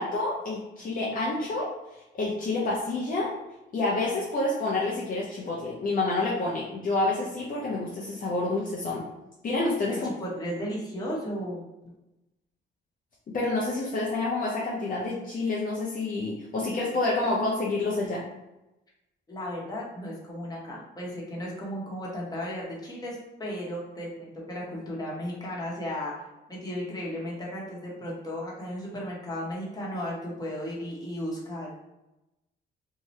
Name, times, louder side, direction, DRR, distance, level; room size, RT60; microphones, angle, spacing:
voice 1, 0.0-3.3 3.7-9.0 9.4-10.1 13.3-18.2, left 2 dB, 45° left, -5 dB, 0.6 m, -28 dB
voice 2, 9.9-11.9 19.3-26.1 26.5-31.7, equal, 20° left, -5 dB, 1.1 m, -35 dB
2.7 x 2.3 x 3.1 m, 0.96 s
cardioid pair, 90°, 20 cm